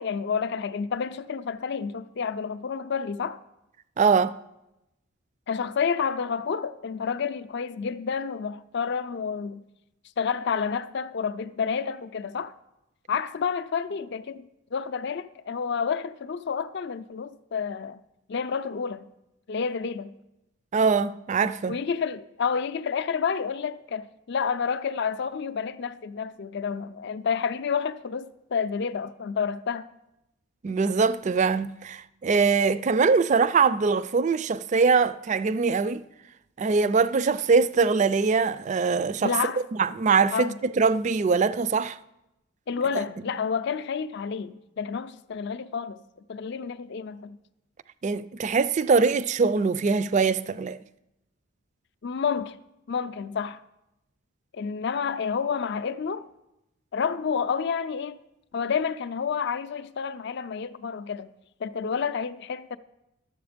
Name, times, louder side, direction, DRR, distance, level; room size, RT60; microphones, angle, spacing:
voice 1, 0.0-3.4 5.5-9.6 10.2-12.5 13.1-18.0 18.3-19.1 19.5-20.1 21.7-29.9 39.2-39.6 40.3-40.6 42.7-46.0 46.3-47.4 52.0-52.6 52.9-53.6 54.5-56.3 56.9-58.2 58.5-61.3 61.6-62.8, left 6 dB, 55° left, 0.4 m, -29 dB
voice 2, 4.0-4.4 20.7-21.7 30.6-36.0 36.6-39.3 39.7-42.0 43.0-43.1 48.0-50.8, right 5 dB, 35° right, 0.3 m, -22 dB
12.0 x 7.7 x 5.1 m
head